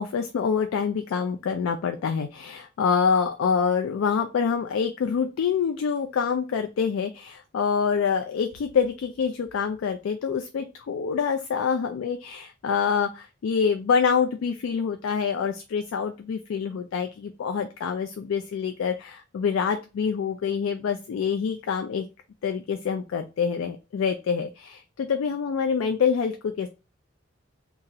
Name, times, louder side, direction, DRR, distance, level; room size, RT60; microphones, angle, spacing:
voice 1, 0.0-22.1 22.4-26.7, left 6 dB, 80° left, 6 dB, 0.3 m, -26 dB
2.9 x 2.4 x 2.6 m, 0.29 s
head